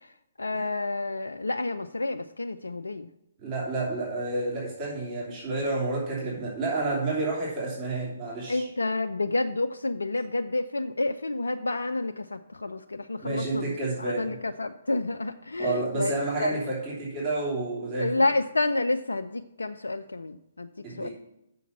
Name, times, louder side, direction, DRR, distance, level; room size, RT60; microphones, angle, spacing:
voice 1, 0.4-3.1 8.5-16.6 18.0-20.7 21.0-21.1, left 2 dB, 85° left, 7 dB, 0.4 m, -29 dB
voice 2, 3.4-8.7 13.2-14.4 15.6-18.2 20.8-21.1, right 2 dB, 30° right, -6 dB, 2.9 m, -30 dB
6.9 x 5.7 x 7.3 m, 0.86 s
figure-of-eight pair, 130°, 0 cm